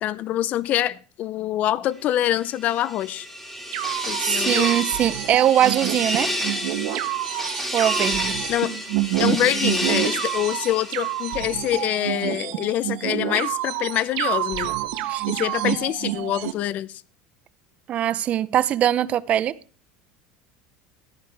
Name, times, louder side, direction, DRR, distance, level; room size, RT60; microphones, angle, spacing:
voice 1, 0.0-3.3 4.1-4.7 8.5-8.7 9.2-14.7 15.3-17.0, left 13 dB, 50° left, 0.6 m, -25 dB
sound 1, 2.6-11.7, equal, 5° left, 3.6 m, -29 dB
sound 2, 3.7-16.5, right 15 dB, 70° right, 1.2 m, -28 dB
voice 2, 4.2-6.3 7.7-8.4 15.1-15.2 17.9-19.6, right 11 dB, 40° right, 0.6 m, -21 dB
14.0 x 9.9 x 3.4 m
supercardioid pair, 115°, 3 cm